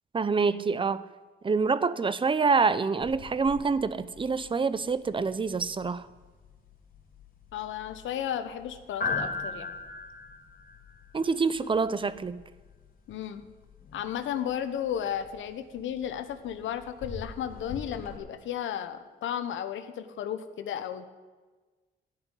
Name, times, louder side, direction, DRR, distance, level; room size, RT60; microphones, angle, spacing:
voice 1, 0.1-1.0 1.4-6.1 11.1-12.4, right 4 dB, 25° right, 0.6 m, -26 dB
sound 1, 3.0-18.2, left 4 dB, 45° left, 3.2 m, -41 dB
voice 2, 7.5-9.8 13.1-13.4 13.9-21.1, left 9 dB, 75° left, 1.2 m, -34 dB
14.5 x 5.8 x 10.0 m
cardioid pair, 90°, 20 cm